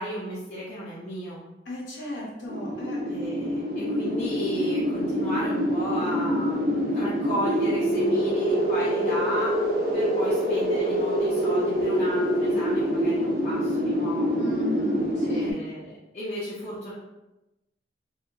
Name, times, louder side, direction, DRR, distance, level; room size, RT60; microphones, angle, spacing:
voice 1, 0.0-1.4 3.1-9.5 9.9-14.5 15.2-16.9, equal, 40° left, -9 dB, 0.5 m, -34 dB
voice 2, 1.7-3.1 14.4-15.6, left 1 dB, 85° left, -3 dB, 0.8 m, -36 dB
sound 1, 2.5-15.5, equal, 50° right, 0.5 m, -25 dB
2.7 x 2.2 x 2.2 m, 0.98 s
head